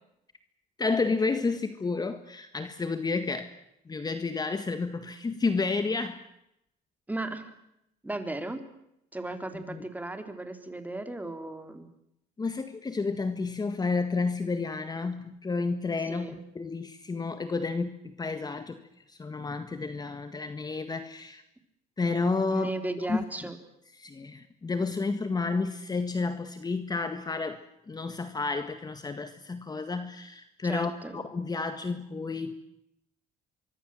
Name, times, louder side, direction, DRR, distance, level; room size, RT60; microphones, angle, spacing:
voice 1, 0.8-3.5 3.9-6.3 9.5-9.8 12.4-21.4 22.0-22.7 23.1-23.2 24.0-32.5, left 4 dB, 25° left, 9 dB, 1.8 m, -31 dB
voice 2, 7.1-7.6 8.0-8.6 9.1-11.9 16.0-16.4 22.5-23.6 30.6-31.2, right 2 dB, 10° right, 7 dB, 3.9 m, -36 dB
25.0 x 24.0 x 7.7 m, 0.80 s
cardioid pair, 110°, 17 cm